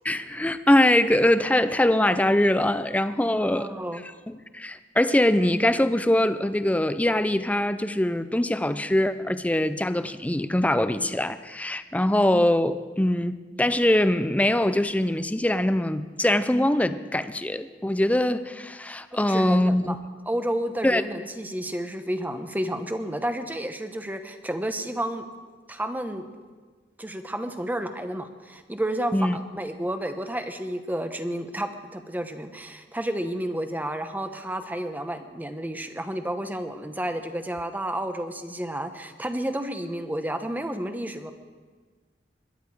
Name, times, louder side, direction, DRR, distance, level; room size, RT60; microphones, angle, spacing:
voice 1, 0.0-3.7 4.3-20.0 20.8-21.0 29.1-29.4, left 1 dB, 10° left, 12 dB, 0.5 m, -23 dB
voice 2, 3.3-4.0 19.3-20.0 20.3-25.3 25.7-26.2 27.0-41.3, right 1 dB, 10° right, 8 dB, 0.9 m, -31 dB
21.5 x 11.5 x 4.7 m, 1.5 s
head